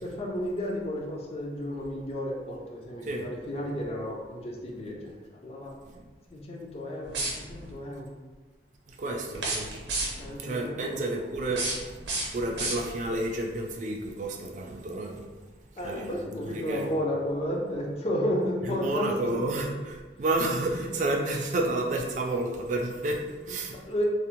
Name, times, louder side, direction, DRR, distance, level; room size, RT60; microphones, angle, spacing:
voice 1, 0.0-5.7 6.3-8.1 9.3-9.5 10.2-11.1 15.8-19.1 19.5-19.6 23.9-24.0, left 1 dB, 35° left, 0 dB, 0.4 m, -32 dB
sound 1, 7.0-7.7 9.3-10.4 11.3-13.2, right 2 dB, 90° right, 0.6 m, -33 dB
voice 2, 8.9-9.7 10.4-11.6 12.3-15.2 15.8-16.1 16.4-16.9 18.7-23.8, right 2 dB, 40° right, 1 dB, 0.3 m, -30 dB
2.5 x 2.0 x 2.9 m, 1.3 s
head